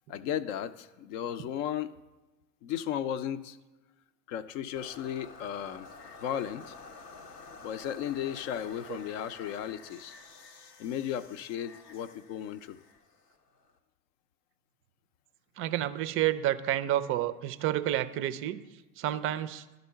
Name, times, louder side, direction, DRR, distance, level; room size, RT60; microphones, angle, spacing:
voice 1, 0.1-1.9 2.6-3.6 4.3-5.9 6.2-6.7 7.6-10.1 10.8-12.8, left 10 dB, 55° left, 13 dB, 0.6 m, -35 dB
sound 1, 4.8-13.8, left 4 dB, 90° left, 0.8 m, -50 dB
voice 2, 15.6-18.6 19.0-19.6, right 13 dB, 30° right, 14 dB, 0.4 m, -29 dB
11.0 x 4.0 x 5.6 m, 1.1 s
hypercardioid pair, 80°, 46 cm